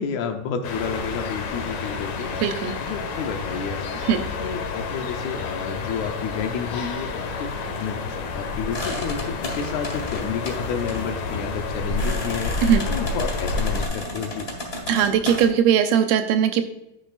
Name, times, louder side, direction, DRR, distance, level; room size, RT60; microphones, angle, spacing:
voice 1, 0.0-2.3 2.8-3.9 4.4-12.5 12.9-14.5, left 6 dB, 80° left, 5 dB, 1.6 m, -30 dB
sound 1, 0.6-13.9, left 4 dB, 60° left, 2.0 m, -29 dB
voice 2, 2.4-2.7 4.1-4.2 12.6-12.8 14.9-16.6, right 8 dB, 85° right, 8 dB, 2.7 m, -19 dB
sound 2, 8.7-15.5, left 1 dB, 45° left, 0.7 m, -34 dB
10.0 x 8.7 x 2.4 m, 0.84 s
omnidirectional pair, 4.3 m